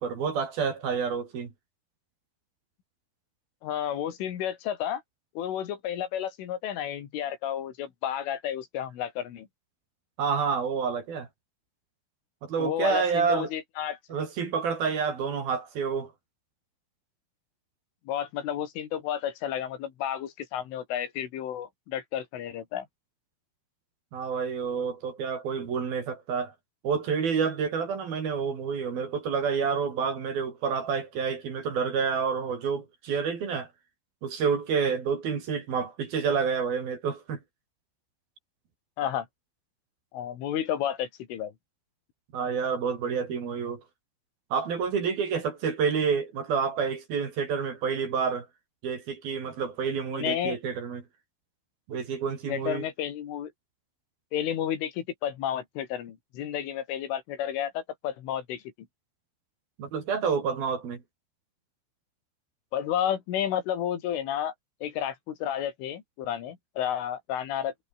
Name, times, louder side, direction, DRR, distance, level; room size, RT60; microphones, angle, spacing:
voice 1, 0.0-1.5 10.2-11.3 12.4-13.5 14.1-16.1 24.1-26.5 26.8-33.7 34.2-37.4 42.3-43.8 44.5-48.5 48.8-51.0 51.9-52.9 59.8-61.0, right 6 dB, 50° right, 5.3 m, -28 dB
voice 2, 3.6-5.0 5.4-9.5 12.6-14.0 18.1-22.9 39.0-39.3 40.1-41.5 50.1-50.6 52.5-53.5 54.3-58.6 62.7-64.5 64.8-67.9, left 10 dB, 80° left, 5.1 m, -31 dB
omnidirectional pair, 5.6 m